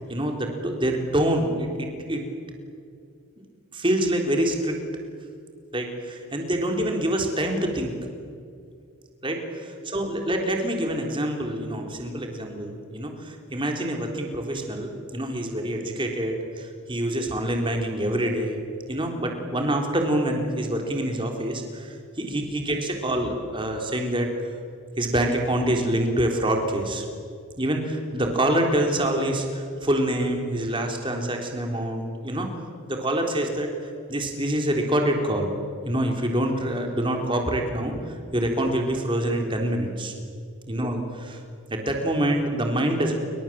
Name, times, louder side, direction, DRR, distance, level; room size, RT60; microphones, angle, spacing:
voice 1, 0.1-2.2 3.7-4.8 5.7-7.9 9.2-18.6 18.9-24.3 25.0-27.1 27.6-32.5 32.9-33.7 34.1-35.5 35.8-40.1 40.7-41.4 41.7-43.1, right 1 dB, 25° right, 3 dB, 3.7 m, -26 dB
29.0 x 24.5 x 7.6 m, 2.3 s
head